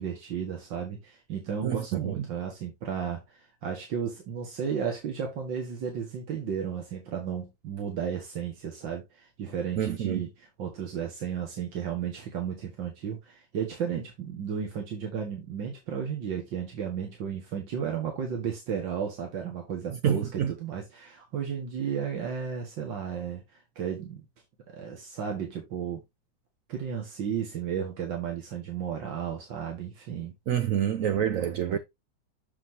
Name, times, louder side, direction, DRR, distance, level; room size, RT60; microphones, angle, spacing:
voice 1, 0.0-10.3 10.6-23.4 23.8-24.3 24.7-26.0 26.7-30.3 31.3-31.8, right 7 dB, 85° right, 2.3 m, -33 dB
voice 2, 1.6-2.2 9.8-10.2 20.0-20.5 30.5-31.8, right 9 dB, 65° right, 0.9 m, -27 dB
7.1 x 7.0 x 2.7 m
omnidirectional pair, 2.0 m